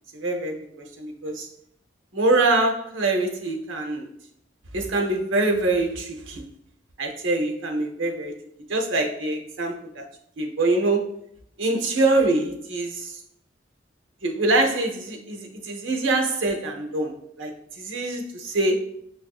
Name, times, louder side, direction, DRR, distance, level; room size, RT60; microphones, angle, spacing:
voice 1, 0.1-1.5 2.1-4.1 4.7-6.4 7.0-8.3 8.7-10.0 10.4-11.1 11.6-13.1 14.2-17.5 17.8-18.8, right 2 dB, 80° right, 4 dB, 0.7 m, -24 dB
6.6 x 2.5 x 2.3 m, 0.71 s
head